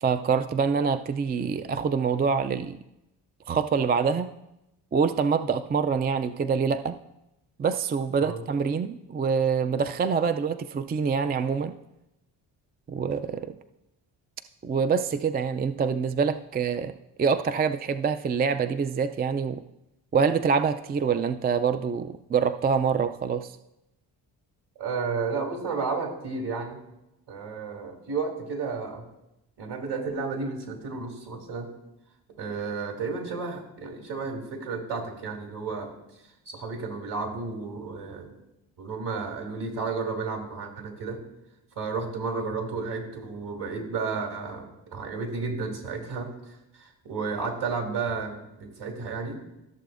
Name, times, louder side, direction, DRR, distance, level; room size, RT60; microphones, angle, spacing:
voice 1, 0.0-2.8 3.5-4.3 4.9-7.0 7.6-11.8 12.9-13.5 14.6-16.9 17.2-19.6 20.1-23.5, right 6 dB, 25° right, 10 dB, 0.4 m, -25 dB
voice 2, 24.8-26.8 27.3-29.0 29.6-31.7 32.4-35.9 36.5-38.3 38.8-41.2 41.8-44.6 44.9-46.3 46.8-49.4, right 4 dB, 60° right, 2 dB, 2.6 m, -32 dB
15.0 x 6.8 x 2.5 m, 0.88 s
supercardioid pair, 65°, 45 cm